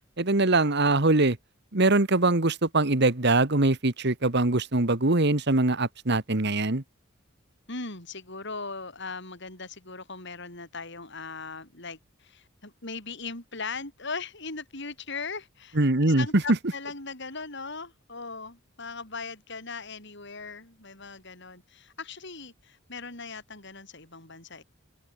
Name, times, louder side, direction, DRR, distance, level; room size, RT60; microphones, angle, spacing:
voice 1, 0.2-1.4 1.7-6.8 15.8-16.3, right 2 dB, 55° right, 1.7 m, -23 dB
voice 2, 7.7-24.6, left 4 dB, 60° left, 7.4 m, -39 dB
head